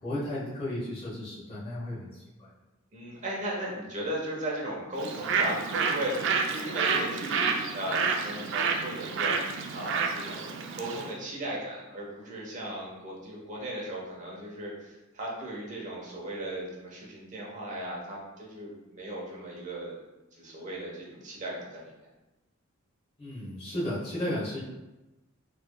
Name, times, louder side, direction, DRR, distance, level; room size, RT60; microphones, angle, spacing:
voice 1, 0.0-2.5 23.2-24.6, left 1 dB, 30° left, -8 dB, 0.9 m, -34 dB
voice 2, 2.9-9.4 9.7-20.0 20.3-21.9, right 1 dB, 35° right, -4 dB, 0.9 m, -36 dB
Bird, 5.0-11.1, right 5 dB, 60° right, 0.3 m, -29 dB
4.0 x 3.1 x 2.2 m, 1.0 s
head